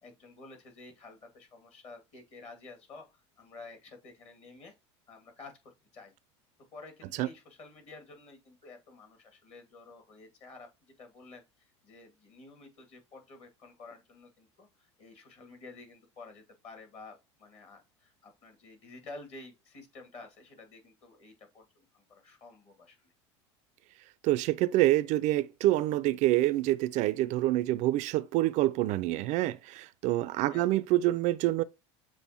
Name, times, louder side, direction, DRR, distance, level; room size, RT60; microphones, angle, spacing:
voice 1, 0.0-4.7 5.1-6.1 6.7-11.4 11.8-23.1 30.4-30.8, left 3 dB, 45° left, 2.2 m, -51 dB
voice 2, 24.2-31.6, right 16 dB, 50° right, 0.4 m, -27 dB
7.0 x 2.6 x 2.9 m
hypercardioid pair, 85°, 15 cm